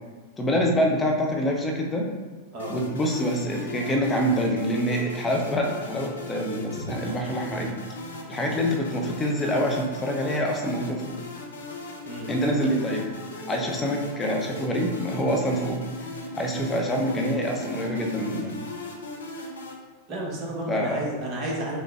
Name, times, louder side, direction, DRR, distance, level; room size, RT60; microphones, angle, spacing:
voice 1, 0.4-2.1 2.7-7.8 8.3-11.2 12.3-13.1 13.5-15.8 16.3-18.6 20.7-21.0, equal, 15° left, 0 dB, 0.7 m, -26 dB
sound 1, 2.6-19.7, left 2 dB, 70° left, 0.6 m, -38 dB
voice 2, 20.1-21.8, right 1 dB, 35° right, -2 dB, 1.1 m, -32 dB
5.8 x 2.1 x 3.4 m, 1.4 s
figure-of-eight pair, 90°, 0 cm